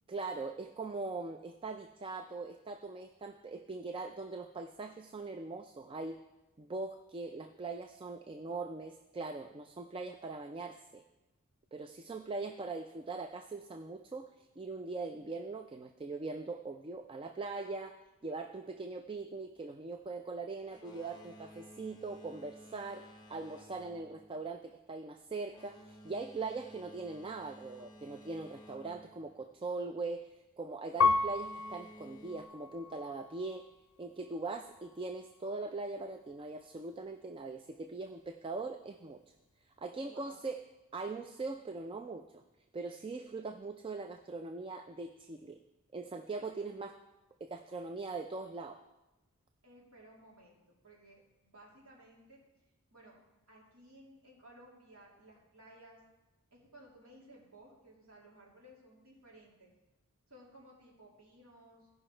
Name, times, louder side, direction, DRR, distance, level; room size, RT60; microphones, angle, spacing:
voice 1, 0.1-6.2 6.6-11.0 11.7-33.7 34.0-39.2 39.8-40.6 40.9-42.4 42.7-45.6 45.9-46.9 47.4-48.8, right 3 dB, 25° right, 6 dB, 0.4 m, -41 dB
Boat Water vehicle, 20.6-30.0 30.8-32.4, equal, 20° left, 1.1 m, -55 dB
Piano, 31.0-33.7 34.4-35.1, left 4 dB, 70° left, 0.5 m, -33 dB
voice 2, 40.0-40.4 46.4-46.8 49.6-52.4 52.9-53.2 53.5-56.0 56.5-59.7 60.3-61.9, right 1 dB, 70° right, -4 dB, 2.8 m, -58 dB
16.5 x 5.6 x 4.4 m, 1.0 s
head